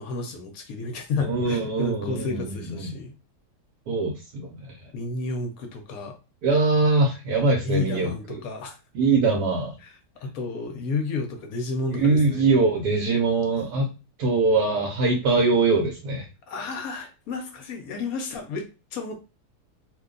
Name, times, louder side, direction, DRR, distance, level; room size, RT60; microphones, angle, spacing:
voice 1, 0.0-3.1 4.9-6.2 7.6-8.8 9.8-9.9 10.2-12.4 16.5-19.2, left 4 dB, 65° left, 5 dB, 1.0 m, -31 dB
voice 2, 1.2-2.9 3.9-4.5 6.4-8.4 8.9-9.8 11.9-13.9 14.2-16.3, right 3 dB, 75° right, 0 dB, 1.2 m, -22 dB
2.8 x 2.2 x 3.7 m, 0.30 s
omnidirectional pair, 1.8 m